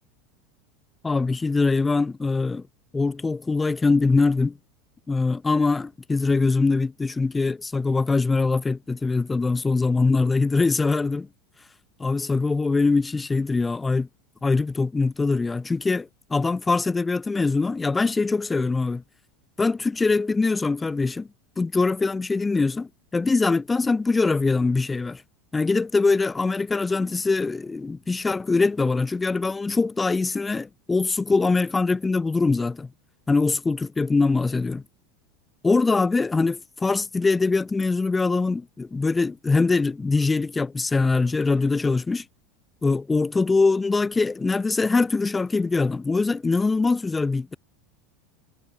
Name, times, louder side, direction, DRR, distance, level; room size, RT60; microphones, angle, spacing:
voice 1, 1.0-2.6 2.9-4.6 5.1-11.3 12.0-14.1 14.4-19.0 19.6-21.3 21.6-25.2 25.5-32.9 33.3-34.8 35.6-42.3 42.8-47.6, left 3 dB, 15° left, 5.2 m, -23 dB
hypercardioid pair, 85°, 0 cm